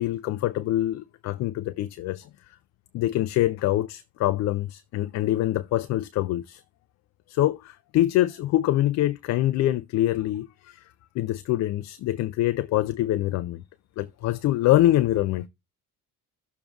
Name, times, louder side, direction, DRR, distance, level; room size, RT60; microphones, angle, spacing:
voice 1, 0.0-2.3 2.9-6.6 7.3-10.9 11.2-13.6 14.0-15.5, left 14 dB, 40° left, 0.4 m, -25 dB
14.0 x 6.8 x 2.5 m
figure-of-eight pair, 45°, 45 cm